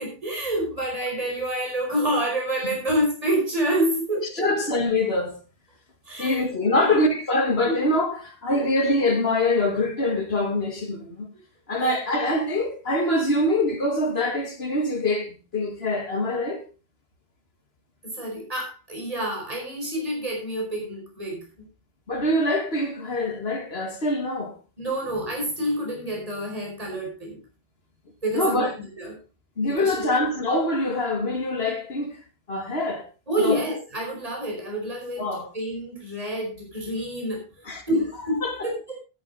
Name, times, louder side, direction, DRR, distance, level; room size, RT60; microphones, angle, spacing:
voice 1, 0.0-4.5 6.0-6.5 6.8-7.0 7.6-7.7 8.5-8.7 11.8-12.0 18.0-21.7 24.8-27.4 28.2-29.2 29.7-30.1 33.3-39.0, right 1 dB, 35° right, 5.1 m, -28 dB
voice 2, 4.4-5.4 6.2-11.3 11.7-16.6 22.1-24.5 28.3-28.7 29.6-32.2 32.5-33.1 33.4-33.6 35.2-35.5 37.7-37.8 38.4-38.7, left 1 dB, 80° left, 2.2 m, -24 dB
13.0 x 9.6 x 4.0 m
omnidirectional pair, 1.0 m